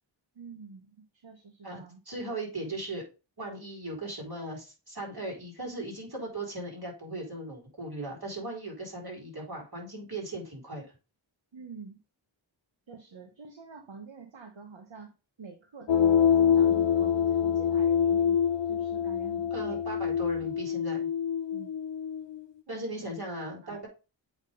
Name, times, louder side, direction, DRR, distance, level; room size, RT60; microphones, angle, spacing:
voice 1, 0.3-2.0 11.5-12.0 12.9-19.8 21.5-21.7 22.7-23.0 23.6-23.8, right 4 dB, 70° right, 5 dB, 1.1 m, -47 dB
voice 2, 1.6-3.0 3.4-10.8 19.5-21.1 22.7-23.9, right 1 dB, 50° right, -2 dB, 4.3 m, -38 dB
sound 1, 15.9-22.4, left 8 dB, 65° left, 0.5 m, -25 dB
8.1 x 3.6 x 5.2 m, 0.30 s
wide cardioid pair, 45°, 47 cm